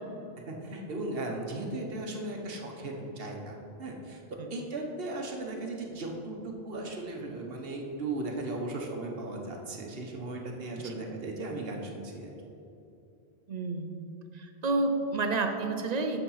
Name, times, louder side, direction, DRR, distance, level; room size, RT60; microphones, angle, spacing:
voice 1, 0.5-4.2 4.5-12.3, right 2 dB, 65° right, 1 dB, 1.2 m, -37 dB
voice 2, 13.5-13.9 14.3-16.2, right 3 dB, 45° right, 5 dB, 0.7 m, -30 dB
7.2 x 6.5 x 5.7 m, 2.7 s
omnidirectional pair, 1.1 m